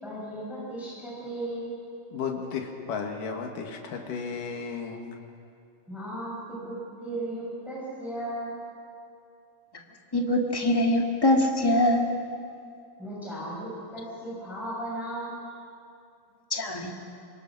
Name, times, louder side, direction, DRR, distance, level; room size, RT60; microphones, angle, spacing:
voice 1, 0.0-1.8 5.9-8.6 13.0-15.5, right 1 dB, ahead, -6 dB, 6.1 m, -36 dB
voice 2, 2.1-5.2, left 5 dB, 90° left, 3 dB, 3.5 m, -34 dB
voice 3, 10.1-12.1 16.5-16.9, left 1 dB, 25° left, 1 dB, 0.5 m, -23 dB
25.5 x 22.0 x 6.1 m, 2.5 s
omnidirectional pair, 3.7 m